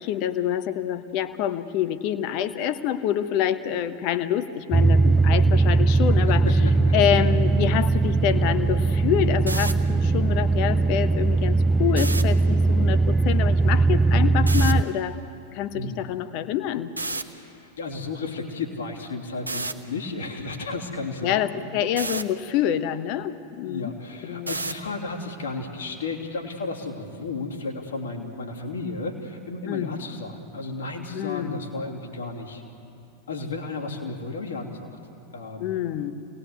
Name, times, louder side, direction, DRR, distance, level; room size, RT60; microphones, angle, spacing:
voice 1, 0.0-6.4 6.9-15.2 15.5-17.0 21.2-23.9 24.2-24.5 29.7-30.0 31.1-31.6 35.6-36.1, left 10 dB, 45° left, 11 dB, 1.1 m, -26 dB
sound 1, 4.7-14.8, right 3 dB, 10° right, 0.5 m, -20 dB
voice 2, 6.4-6.9 15.7-16.0 17.1-21.8 23.6-32.6 33.3-34.9 35.3-35.7, left 3 dB, 65° left, 1 dB, 3.2 m, -33 dB
sound 2, 9.5-9.7 11.9-12.2 14.5-14.7 17.0-17.2 19.5-19.7 22.0-22.2 24.5-24.8, right 3 dB, 80° right, 1.1 m, -29 dB
28.0 x 19.0 x 8.3 m, 2.7 s
figure-of-eight pair, 90°, 0 cm